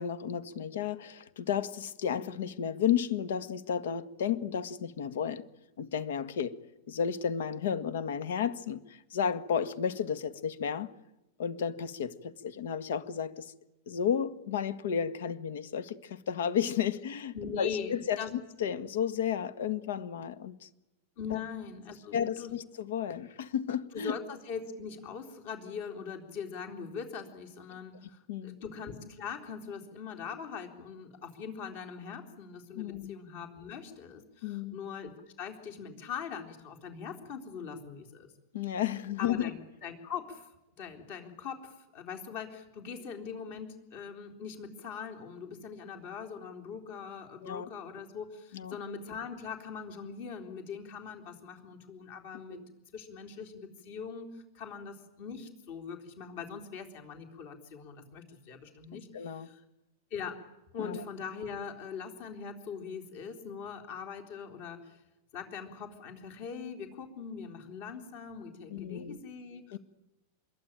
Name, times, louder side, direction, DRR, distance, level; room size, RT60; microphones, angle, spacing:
voice 1, 0.0-5.4 5.8-6.6 6.9-10.9 11.4-13.5 13.9-20.7 21.3-21.4 22.1-24.2 28.3-28.6 32.7-33.1 34.4-34.8 38.5-39.5 47.4-47.7 48.5-48.8 52.5-52.7 59.1-59.5 60.8-61.0 68.7-69.2 69.7-69.8, left 8 dB, 80° left, 1.5 m, -33 dB
voice 2, 17.3-18.3 21.2-22.6 23.9-35.1 35.4-38.3 39.2-39.6 39.8-40.5 40.8-52.6 52.9-59.6 60.1-60.4 60.7-65.0 65.3-69.8, left 6 dB, 45° left, 3.8 m, -42 dB
25.5 x 22.0 x 8.9 m
supercardioid pair, 165°, 0 cm